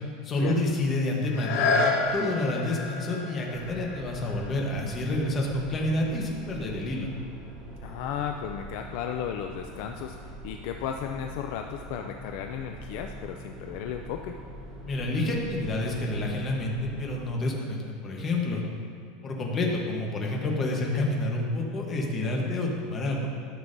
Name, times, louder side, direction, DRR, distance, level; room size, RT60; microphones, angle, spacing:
voice 1, 0.2-7.1 14.8-18.6 19.2-23.3, left 2 dB, 20° left, -1 dB, 1.0 m, -29 dB
sound 1, 1.3-6.9 7.5-7.6, left 4 dB, 80° left, 1.8 m, -31 dB
sound 2, 3.5-17.3, right 1 dB, 20° right, 0.8 m, -43 dB
voice 2, 7.8-14.4, left 9 dB, 50° left, 4 dB, 0.3 m, -34 dB
13.0 x 6.1 x 2.6 m, 2.1 s
supercardioid pair, 180°, 0 cm